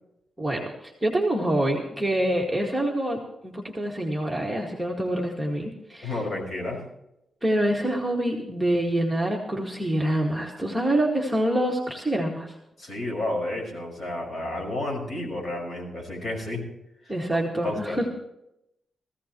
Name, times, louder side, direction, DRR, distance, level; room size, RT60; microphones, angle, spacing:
voice 1, 0.4-6.2 7.4-12.5 17.1-18.1, right 1 dB, 5° right, -2 dB, 2.0 m, -26 dB
voice 2, 6.0-6.9 12.8-16.6 17.0-17.1 17.6-18.0, left 1 dB, 40° left, 0 dB, 5.4 m, -31 dB
18.5 x 15.5 x 3.1 m, 0.83 s
wide cardioid pair, 140°, 0 cm